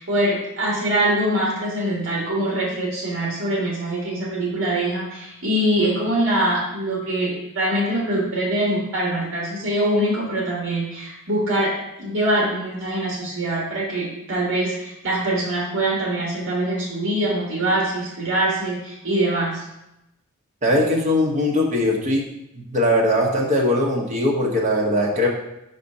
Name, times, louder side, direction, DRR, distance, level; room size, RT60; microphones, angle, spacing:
voice 1, 0.0-11.7 12.0-19.6, right 1 dB, 60° right, -4 dB, 1.6 m, -23 dB
voice 2, 20.6-22.2 22.7-25.3, left 1 dB, 35° right, -2 dB, 1.2 m, -20 dB
5.1 x 4.2 x 5.4 m, 0.88 s
head